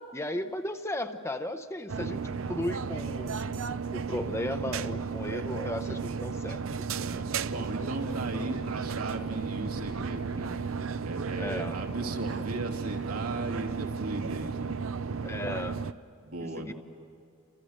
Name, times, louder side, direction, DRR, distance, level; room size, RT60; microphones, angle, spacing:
voice 1, 0.0-3.4 3.9-6.6 11.3-11.8 15.2-15.8 16.6-16.7, left 1 dB, 10° left, 8 dB, 0.8 m, -35 dB
sound 1, 1.9-15.9, right 5 dB, 65° right, 0.6 m, -34 dB
voice 2, 6.9-14.8 16.2-16.7, right 2 dB, 85° right, 1 dB, 2.8 m, -37 dB
30.0 x 27.0 x 6.5 m, 2.5 s
head